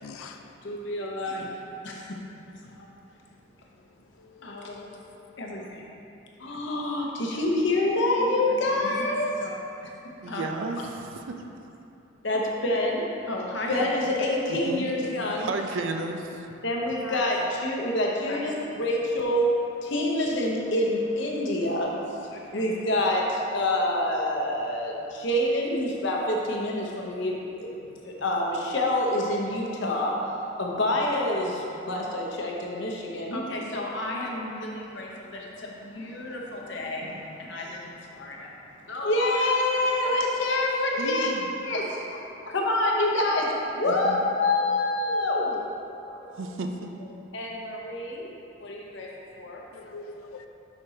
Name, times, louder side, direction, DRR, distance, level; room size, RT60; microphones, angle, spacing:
voice 1, 0.0-0.4 4.5-5.1 5.4-5.6 49.7-50.5, left 4 dB, 85° left, 0.4 m, -44 dB
voice 2, 0.6-1.5 1.8-2.1 2.6-2.9 4.4-4.9 5.4-5.8 6.4-9.6 10.3-10.6 12.2-15.5 16.6-19.5 19.8-27.3 27.6-27.8 28.0-30.1 30.6-38.5 38.9-42.0 42.4-45.7 46.0-46.5 47.3-48.3 48.6-49.1 49.4-49.9, left 1 dB, 60° left, 0.8 m, -27 dB
voice 3, 10.2-11.4 14.5-14.9 15.4-16.2 41.0-41.5 43.8-44.2 46.4-46.9, right 3 dB, 65° right, 0.4 m, -33 dB
7.0 x 5.2 x 2.8 m
head